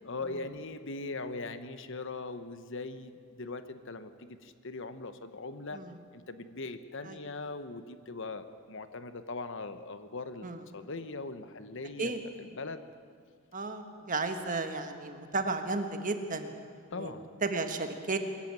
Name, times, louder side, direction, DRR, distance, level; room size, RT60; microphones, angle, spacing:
voice 1, 0.0-5.8 6.1-12.1 12.4-12.8 16.9-17.3, left 3 dB, 60° left, 11 dB, 1.0 m, -40 dB
voice 2, 13.5-16.5 17.0-17.1 17.4-18.2, right 3 dB, 40° right, 7 dB, 1.5 m, -33 dB
22.5 x 14.0 x 8.9 m, 2.2 s
head